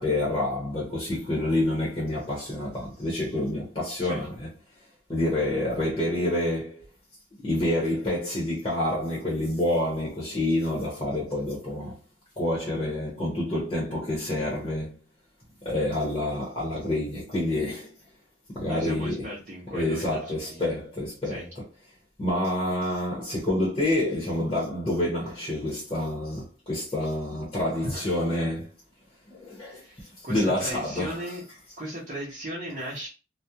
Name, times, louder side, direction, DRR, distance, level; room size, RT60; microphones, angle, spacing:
voice 1, 0.0-4.5 5.1-6.8 7.4-12.0 12.4-14.9 15.6-17.9 18.5-19.3 19.7-21.4 22.2-28.7 29.3-31.2, left 1 dB, 25° left, 0.8 m, -28 dB
voice 2, 18.7-20.7 21.2-21.5 27.8-28.1 29.7-31.4 31.8-33.1, equal, 40° right, 0.7 m, -37 dB
2.4 x 2.1 x 2.8 m
head